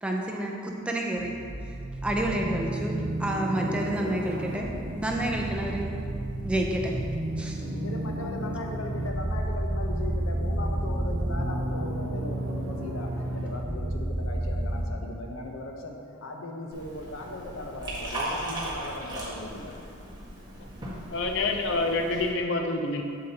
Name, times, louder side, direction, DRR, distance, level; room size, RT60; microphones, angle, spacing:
voice 1, 0.0-1.3 1.7-1.8 2.0-4.7 5.0-5.9 6.4-6.9 7.4-7.7, right 1 dB, 5° right, -1 dB, 0.6 m, -29 dB
sound 1, 1.2-14.9, right 1 dB, 85° right, 0.8 m, -31 dB
voice 2, 7.7-19.8, left 1 dB, 85° left, 2 dB, 0.8 m, -38 dB
Liquid, 16.7-22.3, right 1 dB, 20° right, 1.5 m, -37 dB
voice 3, 21.1-23.0, left 2 dB, 65° left, 4 dB, 0.5 m, -27 dB
7.8 x 7.5 x 2.9 m, 2.5 s
head